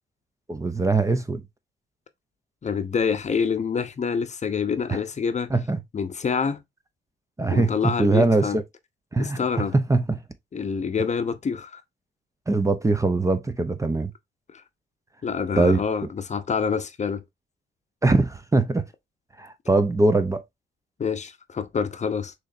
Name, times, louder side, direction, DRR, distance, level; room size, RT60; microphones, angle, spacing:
voice 1, 0.5-1.4 4.9-5.0 5.5-5.8 7.4-8.6 9.1-9.4 9.7-10.2 12.5-14.1 15.6-15.8 18.0-18.8 19.4-20.4, right 3 dB, 15° right, 0.6 m, -22 dB
voice 2, 2.6-5.5 5.9-6.6 7.5-8.6 9.2-9.7 10.5-11.8 14.5-14.6 15.2-17.2 21.0-22.3, left 6 dB, 35° left, 0.7 m, -26 dB
6.3 x 3.2 x 2.6 m
cardioid pair, 90°, 20 cm